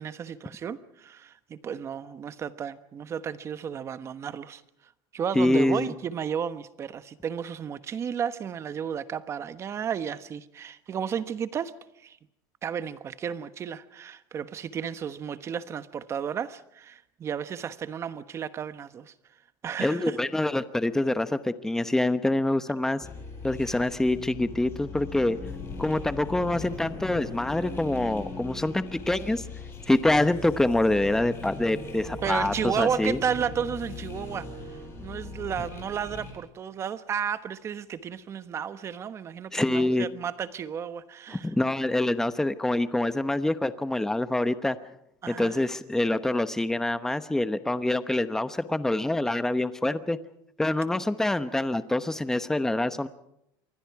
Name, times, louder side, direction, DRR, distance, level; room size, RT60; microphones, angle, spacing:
voice 1, 0.0-4.6 5.1-11.7 12.0-12.2 12.6-19.1 19.6-20.2 32.2-41.5 45.2-45.6, right 8 dB, 30° right, 12 dB, 1.1 m, -33 dB
voice 2, 5.3-5.9 19.8-23.1 23.4-25.4 25.8-29.4 29.9-33.2 39.5-40.1 41.3-44.8 45.3-50.2 50.6-53.1, left 1 dB, 5° left, 12 dB, 0.9 m, -26 dB
sound 1, 23.0-36.3, left 4 dB, 25° left, 7.9 m, -39 dB
27.5 x 23.5 x 4.8 m, 0.78 s
cardioid pair, 150°, 10 cm